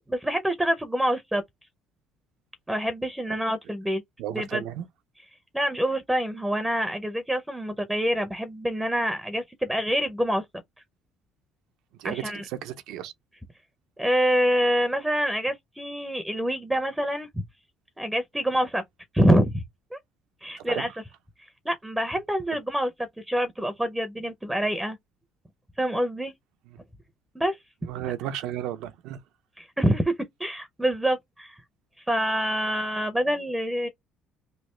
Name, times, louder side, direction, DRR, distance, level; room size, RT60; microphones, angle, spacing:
voice 1, 0.1-1.4 2.7-4.0 4.3-4.6 5.5-10.4 12.0-12.4 14.0-17.4 18.0-18.8 19.1-19.6 19.9-20.0 20.4-20.9 21.7-22.9 23.3-25.0 25.8-26.3 27.4-27.6 29.6-30.1 30.4-31.6 32.1-33.9, equal, 5° right, 0.5 m, -26 dB
voice 2, 4.2-4.9 12.0-13.1 20.6-20.9 26.7-26.8 27.9-29.2, right 11 dB, 75° right, 0.6 m, -34 dB
3.1 x 2.4 x 3.1 m
cardioid pair, 150°, 0 cm